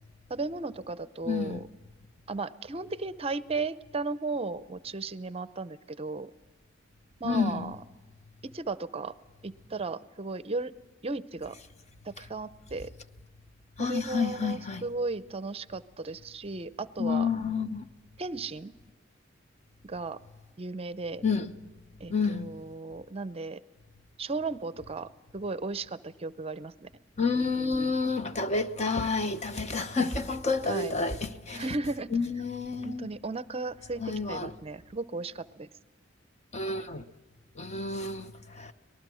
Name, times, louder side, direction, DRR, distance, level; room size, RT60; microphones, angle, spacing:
voice 1, 0.3-1.7 2.3-6.3 7.2-7.8 8.4-9.1 9.4-10.7 11.0-11.6 12.0-12.9 13.8-17.3 18.2-18.7 19.8-20.2 20.6-21.2 22.0-23.6 24.2-26.9 30.6-30.9 31.5-32.1 32.8-35.7, right 3 dB, 30° right, 0.6 m, -35 dB
voice 2, 1.3-1.6 7.2-7.7 13.8-14.8 17.0-17.8 21.2-21.5 22.1-22.5 27.2-31.6 32.1-33.1 34.0-34.5 36.5-37.0 37.6-38.7, left 4 dB, 35° left, 0.9 m, -29 dB
25.0 x 19.5 x 6.3 m
head